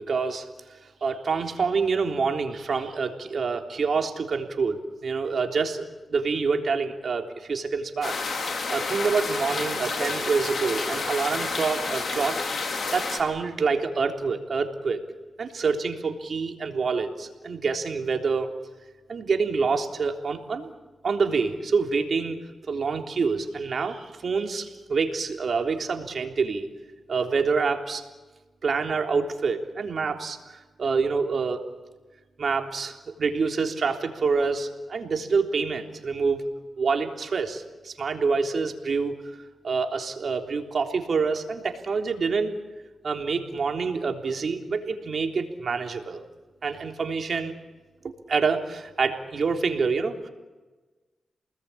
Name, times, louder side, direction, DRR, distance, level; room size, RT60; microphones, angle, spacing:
voice 1, 0.0-12.4 12.9-15.0 15.4-18.5 19.1-20.7 21.0-22.4 22.7-26.7 27.1-28.0 28.6-31.7 32.4-36.4 36.8-39.2 39.6-42.5 43.0-46.2 46.6-47.5 48.3-50.3, right 4 dB, 60° right, 4 dB, 3.5 m, -27 dB
sound 1, 8.0-13.2, left 4 dB, 60° left, 5.3 m, -30 dB
29.0 x 20.5 x 8.7 m, 1.2 s
cardioid pair, 55°, 0 cm